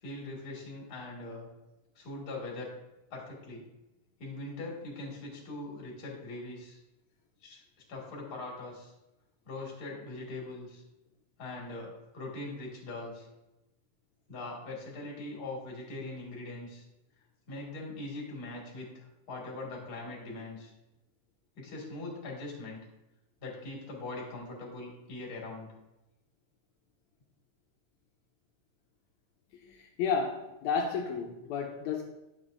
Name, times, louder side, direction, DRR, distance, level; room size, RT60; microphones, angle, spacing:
voice 1, 0.0-1.5 2.0-2.7 3.1-3.6 4.2-6.8 7.4-7.6 7.9-8.9 9.4-10.8 11.4-13.3 14.3-16.8 17.5-20.7 21.6-22.8 23.4-25.7 29.7-29.8, left 2 dB, 35° left, -2 dB, 1.8 m, -41 dB
voice 2, 29.7-32.0, left 5 dB, 85° left, 1 dB, 1.7 m, -32 dB
9.0 x 6.8 x 2.5 m, 0.98 s
omnidirectional pair, 4.0 m